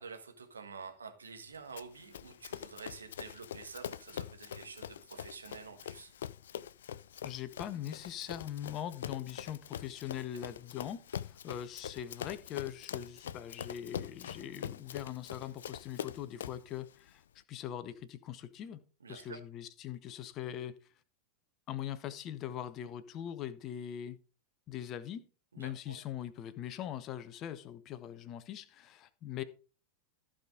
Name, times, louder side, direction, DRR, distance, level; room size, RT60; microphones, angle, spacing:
voice 1, 0.0-6.1 19.0-19.4 25.5-26.0, right 5 dB, 75° right, 1.5 m, -48 dB
Run, 1.8-16.7, left 9 dB, 60° left, 0.4 m, -44 dB
voice 2, 7.2-17.2 17.5-18.8 19.1-20.8 21.7-24.2 24.7-25.2 25.6-29.4, left 10 dB, 35° left, 0.9 m, -41 dB
14.5 x 5.0 x 3.8 m
figure-of-eight pair, 90°, 0 cm